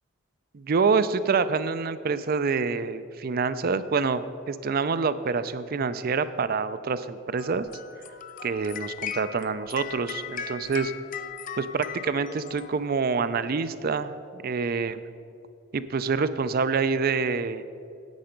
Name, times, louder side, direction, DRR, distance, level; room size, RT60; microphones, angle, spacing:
voice 1, 0.5-7.7 8.4-10.9 11.6-15.0 15.7-17.6, right 5 dB, 45° right, 14 dB, 0.4 m, -26 dB
sound 1, 7.4-13.2, left 8 dB, 40° left, 0.4 m, -38 dB
10.5 x 8.6 x 5.1 m, 2.5 s
head